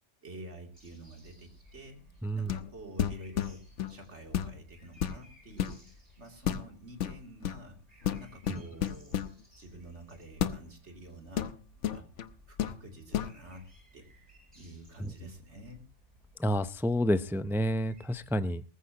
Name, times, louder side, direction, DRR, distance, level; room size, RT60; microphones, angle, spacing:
voice 1, 0.2-2.0 2.3-3.6 3.9-7.8 8.2-9.3 9.6-11.5 11.9-12.1 12.5-13.7 13.9-14.2 14.5-15.8, right 1 dB, 70° right, 3 dB, 3.3 m, -49 dB
sound 1, 0.7-18.3, equal, 30° right, 4.8 m, -59 dB
sound 2, 2.5-2.7 3.0-4.0 4.3-4.6 5.0-5.8 6.4-6.7 7.0-7.6 8.0-9.3 10.4-10.6 11.4-12.3 12.6-12.8 13.1-13.3, left 9 dB, 80° left, 1.2 m, -32 dB
voice 2, 16.4-18.6, equal, 5° right, 13 dB, 0.4 m, -29 dB
19.5 x 14.5 x 2.9 m, 0.32 s
omnidirectional pair, 1.2 m